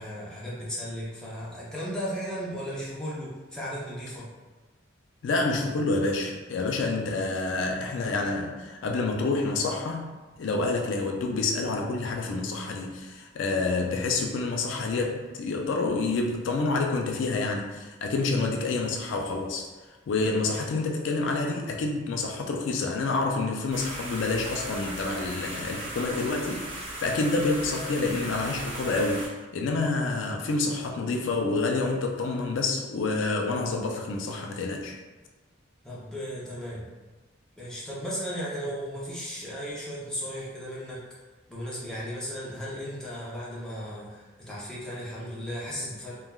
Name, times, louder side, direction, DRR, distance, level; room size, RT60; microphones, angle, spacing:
voice 1, 0.0-4.3 35.8-36.9 37.6-41.0 41.5-46.2, equal, 5° left, -8 dB, 0.6 m, -35 dB
voice 2, 5.2-19.7 20.1-29.2 29.5-35.0, left 3 dB, 70° left, 1 dB, 0.3 m, -28 dB
sound 1, 23.7-29.3, right 1 dB, 30° right, 0.7 m, -37 dB
3.2 x 2.2 x 2.2 m, 1.2 s
head